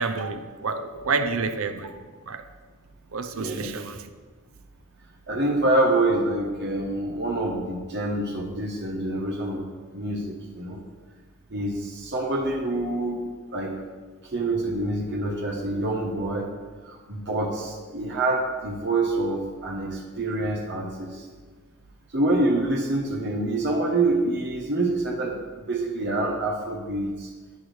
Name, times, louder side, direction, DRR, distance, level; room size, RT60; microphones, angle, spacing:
voice 1, 0.0-1.9 2.3-2.5 3.1-4.1, right 4 dB, 75° right, 0.7 m, -29 dB
voice 2, 3.3-3.7 5.3-9.6 9.9-10.8 11.5-13.2 13.5-13.7 14.3-16.5 16.8-21.3 22.1-25.4 25.7-27.3, right 2 dB, 50° right, 1.1 m, -26 dB
10.5 x 8.5 x 3.3 m
head